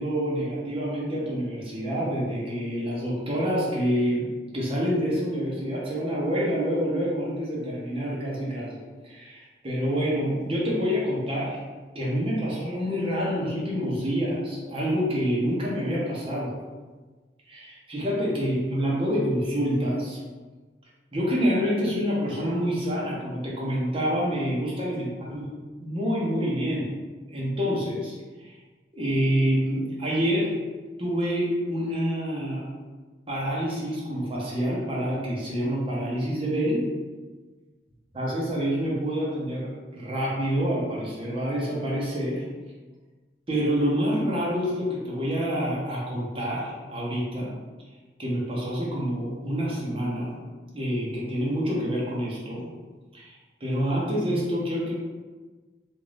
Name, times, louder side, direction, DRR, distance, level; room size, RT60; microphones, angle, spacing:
voice 1, 0.0-4.3 4.5-8.8 9.0-11.6 11.9-16.5 17.5-20.2 21.1-25.5 25.8-26.9 27.3-28.1 28.4-28.5 28.9-30.6 31.0-32.6 33.3-36.8 38.1-42.4 43.5-47.5 48.2-50.3 50.7-52.7 53.1-53.3 53.6-54.9, equal, 30° right, -5 dB, 0.8 m, -27 dB
2.5 x 2.4 x 3.3 m, 1.3 s
head